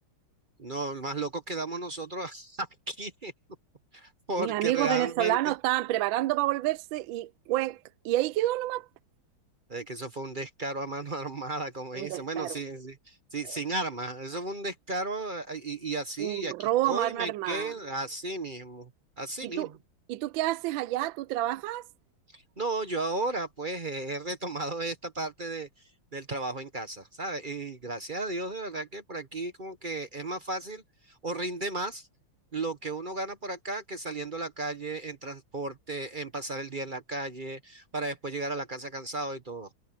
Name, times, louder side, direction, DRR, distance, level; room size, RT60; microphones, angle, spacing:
voice 1, 0.6-3.3 3.9-5.4 9.7-18.9 19.2-19.7 22.3-25.7 26.1-32.1 32.5-39.7, right 2 dB, 35° right, 0.8 m, -34 dB
voice 2, 4.4-7.8 8.0-8.9 11.9-12.6 13.5-13.6 16.2-17.7 19.4-19.7 20.1-21.9, right 15 dB, 75° right, 1.2 m, -29 dB
omnidirectional pair, 2.4 m